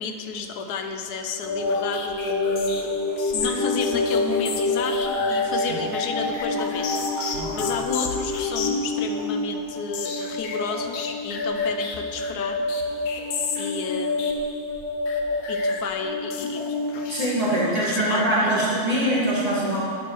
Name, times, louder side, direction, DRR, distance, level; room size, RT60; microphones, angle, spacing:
voice 1, 0.0-2.9 3.3-12.6 13.6-14.3 15.5-16.6 16.9-17.2 17.5-18.5, left 5 dB, 85° left, 5 dB, 1.2 m, -32 dB
sound 1, 1.4-17.9, left 2 dB, 70° left, 1.1 m, -27 dB
voice 2, 17.1-19.8, right 1 dB, 25° right, -8 dB, 1.7 m, -23 dB
9.0 x 4.5 x 4.4 m, 2.3 s
omnidirectional pair, 1.6 m